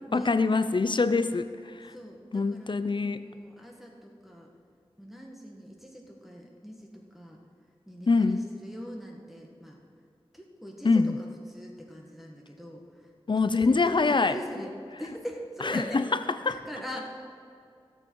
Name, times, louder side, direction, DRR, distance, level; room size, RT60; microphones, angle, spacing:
voice 1, 0.1-1.9 2.3-3.2 8.1-8.4 10.8-11.2 13.3-14.3 15.7-16.0 16.5-16.6, left 4 dB, 50° left, 12 dB, 0.4 m, -24 dB
voice 2, 1.9-4.5 5.0-7.4 7.9-9.8 10.3-13.1 13.4-16.0 16.5-17.3, equal, ahead, -1 dB, 1.5 m, -42 dB
16.5 x 7.3 x 4.6 m, 2.3 s
wide cardioid pair, 65°, 10 cm